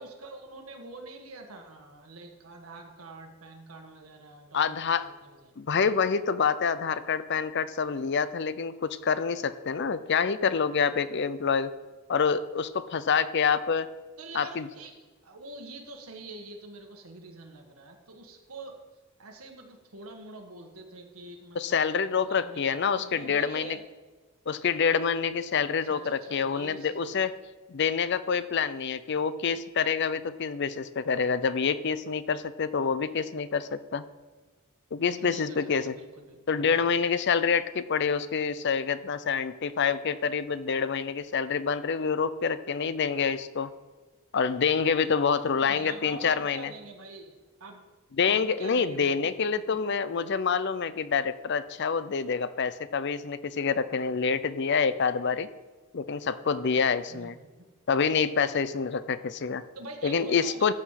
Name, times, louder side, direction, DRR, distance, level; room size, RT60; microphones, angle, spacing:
voice 1, 0.0-5.5 14.2-14.9 15.2-18.8 19.2-23.8 25.8-27.2 35.2-36.8 45.5-47.8 48.2-49.1 49.7-49.8 57.1-57.7 59.7-60.7, right 2 dB, 85° right, 3 dB, 1.7 m, -46 dB
voice 2, 4.5-5.0 5.6-11.7 12.1-13.9 14.4-14.7 21.6-23.8 24.5-27.3 27.7-34.0 34.9-35.9 36.5-43.7 44.3-46.7 48.2-55.5 55.9-57.4 57.9-59.6 60.0-60.7, left 6 dB, 55° left, 14 dB, 0.5 m, -27 dB
14.0 x 5.0 x 5.8 m, 1.3 s
head